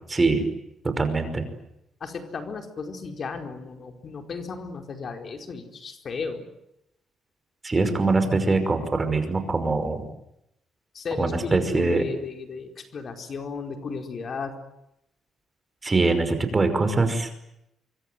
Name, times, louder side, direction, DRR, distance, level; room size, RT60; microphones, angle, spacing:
voice 1, 0.1-0.5 0.8-1.5 7.6-10.1 11.2-12.0 15.8-17.3, right 3 dB, 25° right, 9 dB, 5.5 m, -23 dB
voice 2, 2.0-6.5 10.9-14.6, left 5 dB, 50° left, 5 dB, 4.6 m, -34 dB
25.0 x 24.5 x 9.3 m, 0.83 s
cardioid pair, 90°, 0 cm